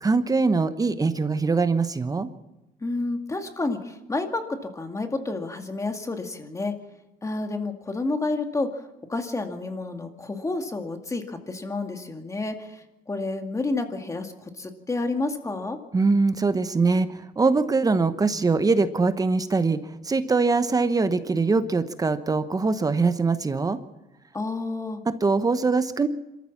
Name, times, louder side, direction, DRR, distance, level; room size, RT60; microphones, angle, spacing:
voice 1, 0.0-2.3 15.9-19.8 20.0-23.8 25.1-26.1, right 4 dB, 20° right, 11 dB, 1.0 m, -22 dB
voice 2, 2.8-6.7 7.2-8.7 9.1-15.8 24.3-25.0, left 3 dB, 20° left, 5 dB, 2.2 m, -30 dB
26.0 x 14.0 x 7.2 m, 0.97 s
cardioid pair, 110°, 17 cm